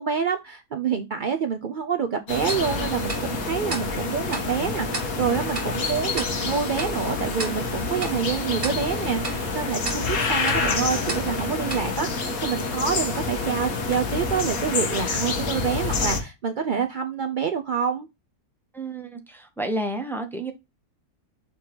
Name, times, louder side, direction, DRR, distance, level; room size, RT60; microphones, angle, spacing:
voice 1, 0.0-18.1, right 7 dB, 75° right, 0.4 m, -27 dB
sound 1, 2.3-16.2, left 3 dB, 65° left, 1.7 m, -27 dB
Tick-tock, 2.5-12.9, right 3 dB, 40° right, 1.3 m, -38 dB
voice 2, 18.7-20.5, right 1 dB, ahead, 0.8 m, -30 dB
6.3 x 2.9 x 5.1 m
omnidirectional pair, 1.6 m